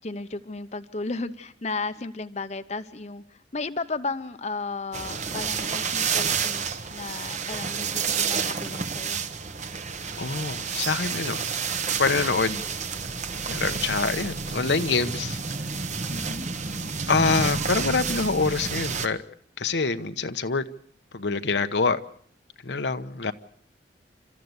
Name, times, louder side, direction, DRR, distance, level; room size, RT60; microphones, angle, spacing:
voice 1, 0.0-9.2 16.1-16.5 17.2-17.6, left 3 dB, 40° left, 0.8 m, -34 dB
sound 1, 4.9-19.1, right 5 dB, 40° right, 1.1 m, -30 dB
voice 2, 10.2-11.4 12.0-12.6 13.5-15.4 17.1-19.2 19.6-20.6 21.1-22.0 22.6-23.3, left 4 dB, 80° left, 1.1 m, -25 dB
30.0 x 13.5 x 8.0 m
head